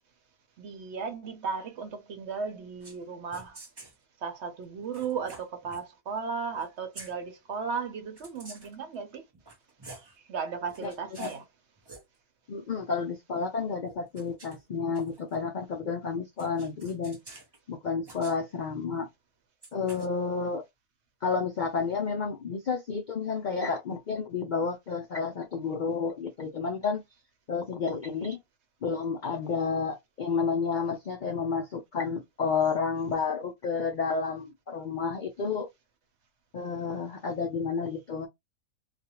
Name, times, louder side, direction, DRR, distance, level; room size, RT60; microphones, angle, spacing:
voice 1, 0.6-3.6 4.2-9.2 10.0-11.4, right 5 dB, 60° right, 0.8 m, -35 dB
sound 1, 2.8-3.0 3.3-4.0 4.9-5.8 6.5-7.1 8.2-8.8 9.3-10.1 10.7-11.4 11.8-12.0 13.9-15.4 16.4-17.6 18.0-18.4 19.6-20.1, right 2 dB, 40° right, 0.3 m, -49 dB
voice 2, 10.8-11.3 12.5-17.2 17.7-19.1 19.7-20.6 21.2-27.0 27.5-28.4 28.8-35.7 36.5-38.3, left 5 dB, 65° left, 0.4 m, -31 dB
2.5 x 2.2 x 2.8 m
omnidirectional pair, 1.5 m